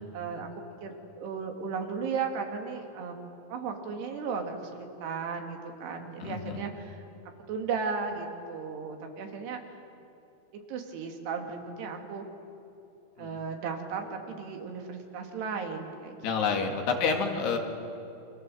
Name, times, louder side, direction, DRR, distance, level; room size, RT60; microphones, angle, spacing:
voice 1, 0.1-0.5 0.8-3.2 3.5-7.0 7.5-9.6 10.5-12.3 13.2-16.2 16.5-16.7, right 5 dB, 90° right, 3 dB, 4.3 m, -35 dB
voice 2, 6.2-6.6 13.2-13.4 16.2-17.6, left 5 dB, 85° left, 3 dB, 4.2 m, -29 dB
28.5 x 26.0 x 7.7 m, 2.8 s
omnidirectional pair, 4.6 m